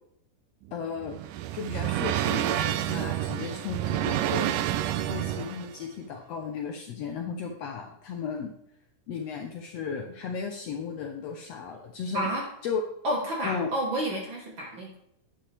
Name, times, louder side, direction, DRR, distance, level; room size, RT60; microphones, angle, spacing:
sound 1, 0.6-5.8, right 12 dB, 90° right, 2.2 m, -29 dB
voice 1, 0.7-1.2 1.5-4.5 5.1-8.5 9.1-12.3 12.6-12.8 13.4-13.7, left 6 dB, 70° left, 3 dB, 1.6 m, -35 dB
Chirp tweet, 1.5-4.5, right 2 dB, 65° right, 4.7 m, -56 dB
voice 2, 12.1-12.4 13.0-14.9, right 1 dB, 50° right, -1 dB, 1.7 m, -30 dB
10.5 x 8.7 x 3.3 m, 0.76 s
omnidirectional pair, 3.7 m